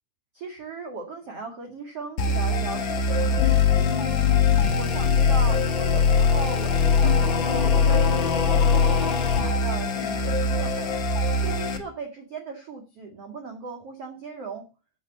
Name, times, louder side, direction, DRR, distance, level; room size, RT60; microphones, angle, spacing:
voice 1, 0.3-3.9 4.8-10.9 11.4-14.7, right 3 dB, 45° right, 3 dB, 2.3 m, -37 dB
sound 1, 2.2-11.8, left 5 dB, 70° left, 1.1 m, -21 dB
13.0 x 8.3 x 6.9 m, 0.32 s
omnidirectional pair, 5.4 m